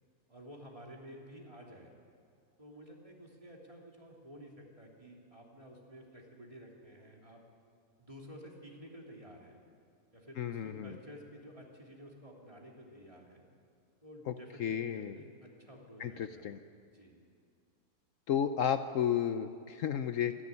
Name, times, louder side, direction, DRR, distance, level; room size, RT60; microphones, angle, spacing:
voice 1, 0.3-1.9 2.6-7.4 8.0-9.6 10.1-13.4 14.0-16.5 16.9-17.2, equal, 20° right, -1 dB, 3.1 m, -52 dB
voice 2, 10.4-11.0 14.3-14.4 14.6-15.2 16.0-16.6 18.3-20.4, left 9 dB, 65° left, 9 dB, 1.0 m, -32 dB
25.5 x 11.5 x 9.7 m, 2.4 s
omnidirectional pair, 1.5 m